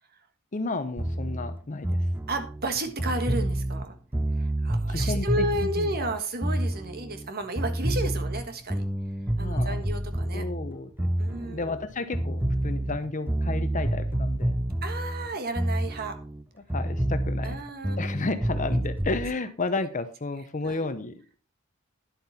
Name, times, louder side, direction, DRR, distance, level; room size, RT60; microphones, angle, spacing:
voice 1, 0.5-2.0 4.9-5.5 5.8-6.1 9.4-9.9 10.3-14.6 16.6-17.6 18.0-21.4, left 3 dB, 35° left, 10 dB, 0.8 m, -32 dB
sound 1, 1.0-7.3 7.6-11.9 12.1-16.4 16.7-19.3, right 1 dB, 10° right, 0.5 m, -28 dB
voice 2, 2.3-3.9 4.4-8.8 9.4-10.4 11.2-11.8 14.8-16.2 17.4-18.0 20.6-20.9, right 2 dB, 45° right, 7 dB, 1.4 m, -32 dB
10.5 x 7.8 x 4.2 m, 0.34 s
head